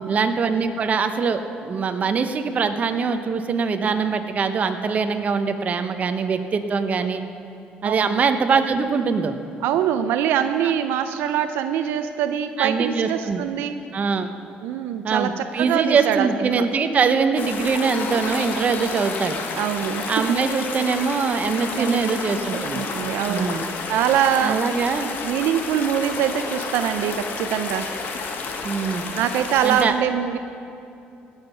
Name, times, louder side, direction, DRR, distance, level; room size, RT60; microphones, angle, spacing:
voice 1, 0.1-7.2 7.8-9.4 10.6-10.7 12.6-13.4 13.9-14.3 15.0-19.4 20.1-22.8 23.3-23.7 24.4-25.2 28.6-29.0 29.6-29.9, right 5 dB, 40° right, 8 dB, 0.9 m, -23 dB
voice 2, 7.8-8.2 9.6-13.7 14.6-16.7 19.6-20.1 21.7-23.5 23.9-24.6 25.2-27.9 29.2-30.4, right 9 dB, 85° right, 9 dB, 0.5 m, -24 dB
sound 1, 17.4-29.8, left 4 dB, 60° left, 1.4 m, -31 dB
Laughter, 17.8-20.6, left 2 dB, 40° left, 2.7 m, -37 dB
18.0 x 7.3 x 5.6 m, 2.7 s
cardioid pair, 100°, 4 cm